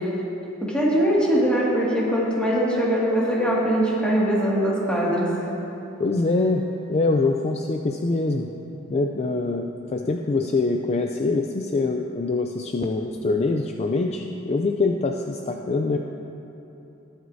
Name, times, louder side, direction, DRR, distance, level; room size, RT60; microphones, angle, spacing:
voice 1, 0.6-5.3, equal, 5° left, -6 dB, 2.1 m, -21 dB
voice 2, 6.0-6.6 6.9-8.5 8.9-16.0, left 3 dB, 30° left, 3 dB, 0.4 m, -24 dB
20.0 x 7.9 x 2.7 m, 3.0 s
head